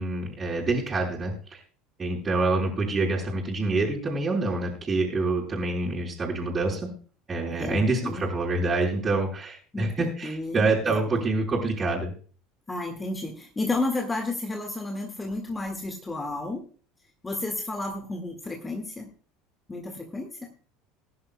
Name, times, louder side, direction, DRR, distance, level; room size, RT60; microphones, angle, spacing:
voice 1, 0.0-1.6 2.0-6.9 7.3-12.1, right 3 dB, 25° right, -5 dB, 4.1 m, -26 dB
voice 2, 7.5-8.3 9.7-10.9 12.7-16.6 17.2-19.1 19.7-20.5, left 2 dB, 15° left, 4 dB, 1.9 m, -32 dB
21.0 x 10.5 x 2.2 m, 0.40 s
figure-of-eight pair, 70°, 0 cm